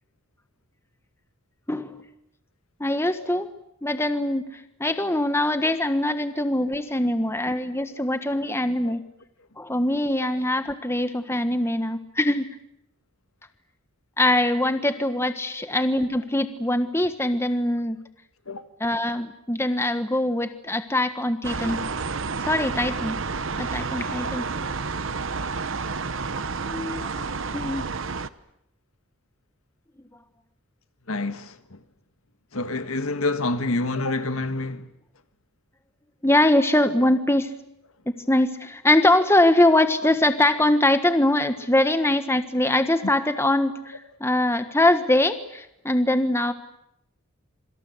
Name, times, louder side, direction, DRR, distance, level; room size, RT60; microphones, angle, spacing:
voice 1, 1.7-2.1 2.8-3.5 3.8-9.0 9.6-12.5 14.2-18.0 18.8-21.8 22.4-23.2 23.6-24.5 26.6-27.9 36.2-37.5 38.1-46.5, left 1 dB, 10° left, 1.4 m, -23 dB
sound 1, 21.4-28.3, right 4 dB, 60° right, 1.0 m, -30 dB
voice 2, 26.1-26.4 31.1-31.8 32.5-34.9, left 2 dB, 75° left, 1.7 m, -28 dB
27.0 x 25.0 x 8.0 m
head